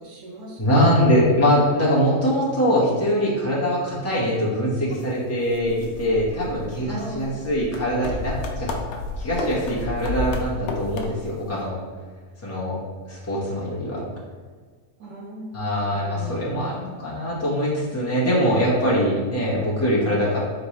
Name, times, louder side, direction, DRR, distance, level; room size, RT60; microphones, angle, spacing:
voice 1, 0.0-0.8 6.8-7.5 15.0-16.8 19.9-20.2, right 2 dB, 85° right, -2 dB, 1.5 m, -37 dB
voice 2, 0.6-8.7 9.2-11.8 12.4-12.8 13.1-14.0 15.5-20.4, equal, 10° left, -7 dB, 1.1 m, -22 dB
sound 1, 4.9-5.0 5.5-11.4, left 2 dB, 65° left, 0.7 m, -32 dB
4.3 x 3.9 x 3.2 m, 1.5 s
omnidirectional pair, 1.6 m